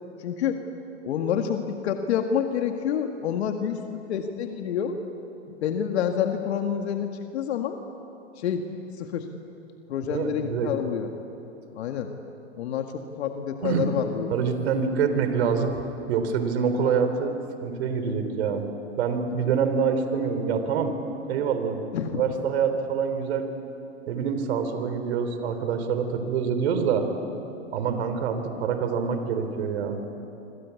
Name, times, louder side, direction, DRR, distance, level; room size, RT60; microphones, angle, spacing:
voice 1, 0.2-0.6 1.0-5.0 5.5-7.8 8.4-8.6 9.0-9.3 9.9-11.1 11.7-12.1 12.6-12.9 13.2-14.4 21.9-22.2, left 8 dB, 70° left, 5 dB, 1.9 m, -28 dB
voice 2, 10.1-10.7 13.6-13.9 14.3-15.7 16.1-17.3 17.6-18.7 19.0-21.0 21.3-21.8 22.1-23.5 24.1-27.1 27.7-30.0, right 6 dB, 65° right, 8 dB, 3.8 m, -26 dB
26.5 x 25.5 x 8.4 m, 3.0 s
hypercardioid pair, 115°, 35 cm